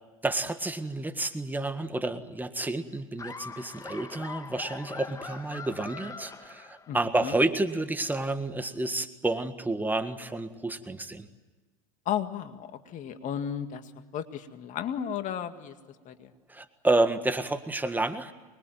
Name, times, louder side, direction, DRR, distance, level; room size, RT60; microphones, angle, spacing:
voice 1, 0.2-11.3 16.5-18.3, right 2 dB, 10° right, 9 dB, 1.7 m, -30 dB
Laughter, 3.2-7.2, left 4 dB, 20° left, 1.8 m, -42 dB
voice 2, 12.1-15.8 16.1-16.3, left 9 dB, 45° left, 8 dB, 2.1 m, -34 dB
25.0 x 21.5 x 9.3 m, 1.3 s
hypercardioid pair, 95°, 17 cm